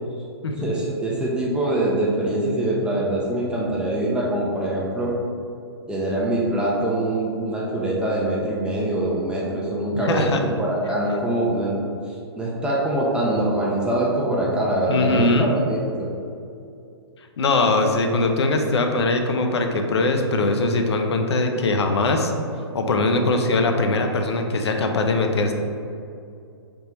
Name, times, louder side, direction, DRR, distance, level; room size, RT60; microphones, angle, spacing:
voice 1, 0.6-5.2 5.9-11.8 12.4-16.1, right 1 dB, 5° right, -5 dB, 0.4 m, -23 dB
voice 2, 9.9-10.4 14.9-15.5 17.4-22.3 22.7-25.5, left 2 dB, 80° left, 4 dB, 0.6 m, -21 dB
3.5 x 2.8 x 4.4 m, 2.5 s
hypercardioid pair, 140°, 14 cm